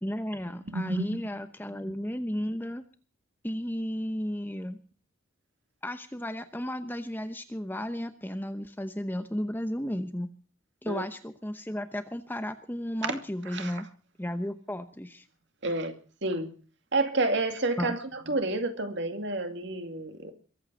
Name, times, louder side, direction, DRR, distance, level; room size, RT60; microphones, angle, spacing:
voice 1, 0.0-2.8 3.4-4.8 5.8-10.3 10.8-13.9 14.2-15.3 17.8-18.0, equal, 10° left, 0.8 m, -34 dB
voice 2, 0.7-1.1 1.8-1.9 10.9-11.0 13.0-13.1 13.5-13.7 15.6-15.9 16.2-16.5 16.9-20.3, right 2 dB, 55° right, 2.4 m, -29 dB
22.5 x 8.8 x 6.2 m
head